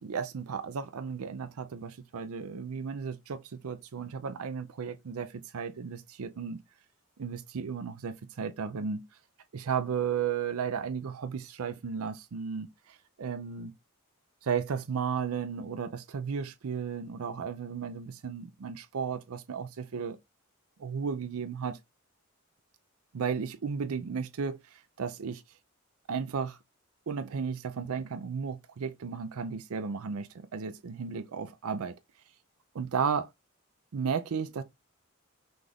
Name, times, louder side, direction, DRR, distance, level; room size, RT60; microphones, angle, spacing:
voice 1, 0.0-6.6 7.2-9.0 9.5-13.7 14.4-20.2 20.8-21.8 23.1-25.4 26.1-26.6 27.1-31.9 32.7-33.3 33.9-34.6, right 6 dB, 80° right, 0.5 m, -34 dB
5.9 x 2.5 x 3.4 m
head